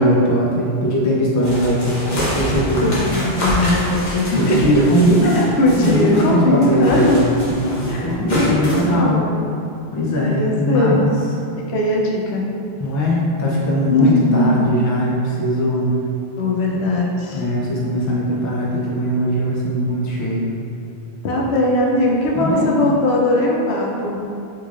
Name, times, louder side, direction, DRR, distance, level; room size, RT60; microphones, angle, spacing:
voice 1, 0.0-2.9 4.3-5.5 5.8-9.2 9.9-11.1 12.8-16.0 17.3-20.5 22.3-22.9, equal, 30° left, -4 dB, 0.3 m, -19 dB
sound 1, 1.4-6.3 6.6-8.9, left 1 dB, 50° left, 0.9 m, -26 dB
voice 2, 2.8-4.6 5.2-7.2 7.9-9.4 10.2-11.0 11.7-12.5 13.9-14.6 16.4-17.4 21.2-24.2, left 1 dB, 85° left, -1 dB, 0.9 m, -19 dB
3.8 x 3.1 x 2.4 m, 2.6 s
omnidirectional pair, 1.1 m